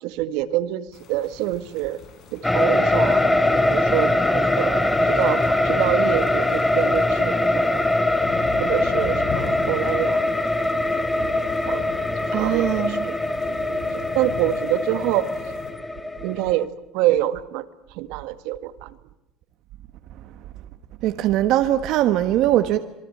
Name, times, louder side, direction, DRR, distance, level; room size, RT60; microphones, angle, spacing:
voice 1, 0.0-2.0 2.3-3.2 3.7-7.6 8.6-10.2 11.7-11.9 12.2-13.2 13.4-15.3 16.2-17.7 17.9-19.0, right 14 dB, 75° right, 1.8 m, -26 dB
sound 1, 0.9-15.7, left 7 dB, 45° left, 7.0 m, -40 dB
sound 2, 2.4-16.6, left 1 dB, 5° left, 1.9 m, -22 dB
voice 2, 12.3-13.0 21.0-22.8, right 13 dB, 60° right, 1.4 m, -21 dB
26.5 x 22.5 x 8.7 m
cardioid pair, 145°, 0 cm